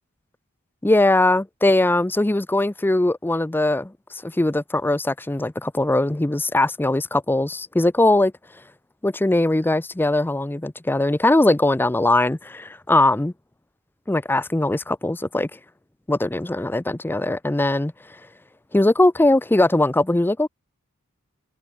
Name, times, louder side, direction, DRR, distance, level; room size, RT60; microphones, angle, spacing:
voice 1, 0.8-3.9 4.2-8.3 9.0-13.3 14.1-15.5 16.1-17.9 18.7-20.5, left 2 dB, 10° left, 0.5 m, -20 dB
head